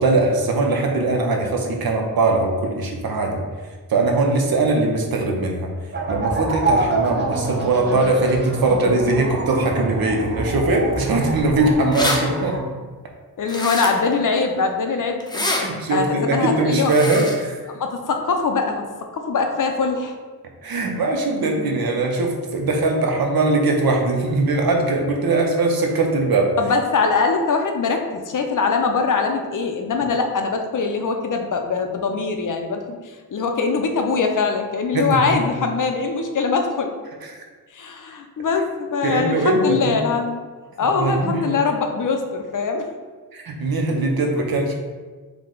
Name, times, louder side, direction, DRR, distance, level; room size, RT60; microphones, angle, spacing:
voice 1, 0.0-3.4 3.9-5.7 6.1-12.6 15.6-17.6 20.6-26.5 34.9-35.4 37.3-37.4 39.0-40.0 41.0-41.6 43.3-44.7, right 2 dB, 80° right, 2 dB, 0.7 m, -21 dB
sound 1, 5.9-12.6, right 2 dB, 30° right, 0.6 m, -26 dB
sound 2, 11.4-11.5 11.7-12.2 13.5-14.1 15.2-15.6 16.8-17.4, left 1 dB, 10° left, 0.5 m, -25 dB
voice 2, 13.4-16.9 17.8-18.9 19.1-20.2 26.6-36.9 37.7-40.4 40.8-42.8, left 4 dB, 60° left, 4 dB, 0.5 m, -22 dB
4.5 x 2.1 x 3.7 m, 1.4 s
wide cardioid pair, 95°, 36 cm